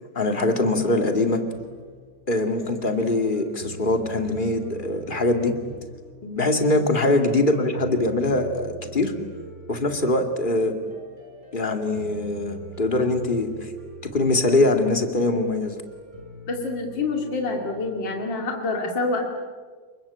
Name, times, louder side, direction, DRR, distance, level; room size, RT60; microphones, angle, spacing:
voice 1, 0.1-1.4 2.3-5.5 6.3-9.1 9.7-10.8 11.5-13.7 14.1-15.8, left 2 dB, 25° left, 5 dB, 2.5 m, -22 dB
sound 1, 1.5-18.2, right 3 dB, 35° right, 7.2 m, -43 dB
voice 2, 16.5-19.3, left 3 dB, 65° left, 2 dB, 3.2 m, -27 dB
30.0 x 21.5 x 8.7 m, 1.5 s
omnidirectional pair, 2.2 m